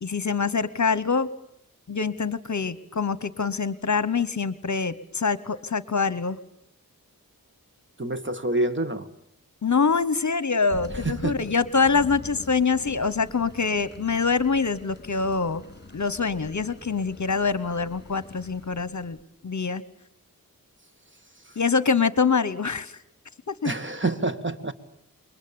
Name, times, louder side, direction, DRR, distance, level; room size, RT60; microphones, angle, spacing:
voice 1, 0.0-1.3 1.9-6.4 9.6-15.6 15.9-19.2 19.4-19.8 21.6-23.0 23.5-23.7, left 5 dB, 50° left, 17 dB, 1.0 m, -25 dB
voice 2, 8.0-9.1 10.9-11.4 23.6-24.7, right 2 dB, 30° right, 9 dB, 1.9 m, -27 dB
Thunder, 10.7-19.2, left 3 dB, 30° left, 2.6 m, -44 dB
28.0 x 23.0 x 8.7 m, 0.71 s
wide cardioid pair, 70°, 36 cm